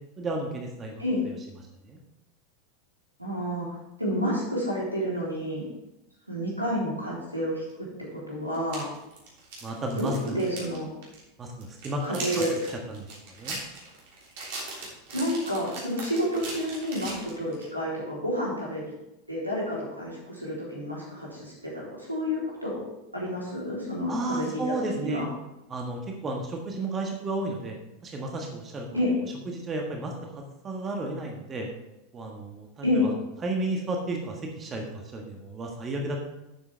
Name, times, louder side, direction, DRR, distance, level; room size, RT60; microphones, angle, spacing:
voice 1, 0.2-1.0 1.8-2.0 9.6-10.4 11.4-12.4 12.7-13.6 24.1-25.3 25.7-27.7 28.0-28.9 29.4-31.7 32.1-33.1 33.4-36.2, right 2 dB, 25° right, 2 dB, 1.5 m, -33 dB
voice 2, 3.2-3.7 4.0-5.7 6.3-7.6 8.3-8.9 10.0-10.9 12.0-12.5 15.1-18.9 19.3-24.6 24.9-25.3 28.9-29.1 32.8-33.1, equal, 90° right, -5 dB, 3.5 m, -29 dB
sound 1, 7.7-7.8 8.5-10.8 11.0-11.2 11.6-17.7, right 3 dB, 55° right, 3.2 m, -39 dB
11.5 x 7.5 x 3.4 m, 0.91 s
figure-of-eight pair, 85°, 0 cm